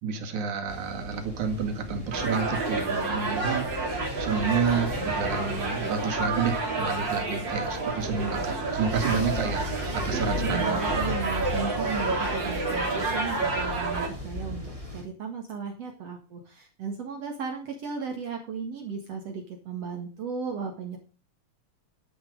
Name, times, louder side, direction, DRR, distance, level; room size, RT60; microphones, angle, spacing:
voice 1, 0.0-10.9, right 6 dB, 85° right, 4 dB, 3.5 m, -30 dB
sound 1, 0.7-15.0, left 1 dB, 10° right, 3.7 m, -37 dB
sound 2, 2.1-14.1, right 3 dB, 40° right, 3.7 m, -29 dB
voice 2, 10.1-21.0, right 5 dB, 60° right, 2 dB, 2.8 m, -35 dB
11.0 x 10.0 x 5.2 m, 0.35 s
omnidirectional pair, 3.3 m